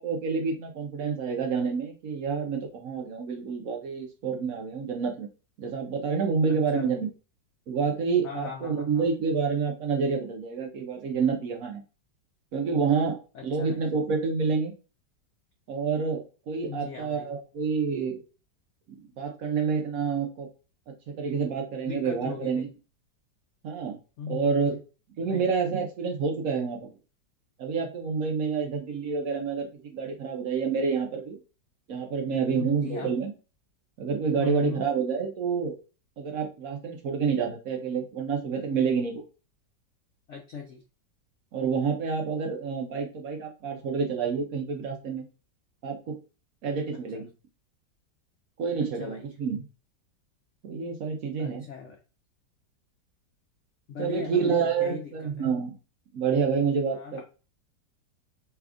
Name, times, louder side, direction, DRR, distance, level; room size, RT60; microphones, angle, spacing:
voice 1, 0.0-5.3 5.6-7.1 7.7-11.8 12.5-13.2 13.4-14.7 15.7-18.2 18.9-20.5 21.1-22.7 23.6-24.0 24.3-24.8 25.2-26.9 27.6-31.4 31.9-33.3 34.0-35.7 36.2-39.2 41.5-45.2 45.8-46.2 46.6-47.3 48.6-49.6 50.6-51.6 54.0-55.7 56.1-57.2, right 5 dB, 65° right, 3 dB, 0.9 m, -28 dB
voice 2, 6.5-7.0 8.2-9.1 13.3-13.9 16.7-17.3 21.8-22.7 24.2-24.6 25.2-25.5 32.5-33.2 34.4-34.8 40.3-40.8 47.1-47.2 48.8-49.3 51.4-52.0 53.9-55.5 56.9-57.2, left 6 dB, 80° left, 2 dB, 0.6 m, -39 dB
3.4 x 2.3 x 3.5 m, 0.34 s
omnidirectional pair, 1.9 m